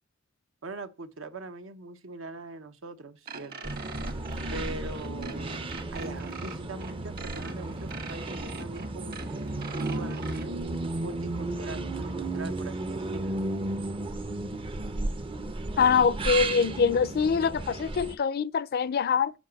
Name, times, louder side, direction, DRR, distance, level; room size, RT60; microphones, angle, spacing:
voice 1, 0.6-3.7 4.5-5.6 5.9-9.2 9.7-13.4, right 2 dB, 80° right, 0.9 m, -41 dB
sound 1, 3.3-10.5, right 3 dB, 50° right, 1.3 m, -42 dB
sound 2, 3.6-18.2, right 2 dB, 25° right, 0.5 m, -34 dB
voice 2, 15.8-19.3, left 6 dB, 50° left, 0.4 m, -24 dB
8.3 x 5.0 x 5.2 m
head